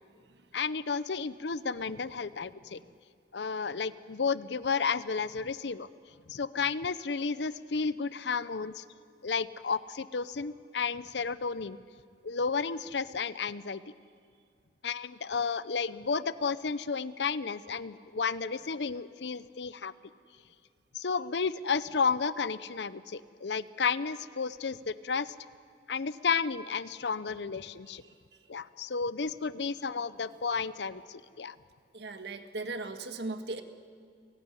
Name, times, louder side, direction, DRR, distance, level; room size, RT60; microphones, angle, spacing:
voice 1, 0.5-2.8 3.3-5.9 6.3-8.8 9.2-11.8 12.2-13.8 14.8-19.9 20.9-25.3 25.9-28.0 28.5-31.5, left 5 dB, 75° left, 15 dB, 0.7 m, -32 dB
voice 2, 31.9-33.6, right 3 dB, 70° right, 8 dB, 1.8 m, -37 dB
30.0 x 17.5 x 9.9 m, 2.2 s
head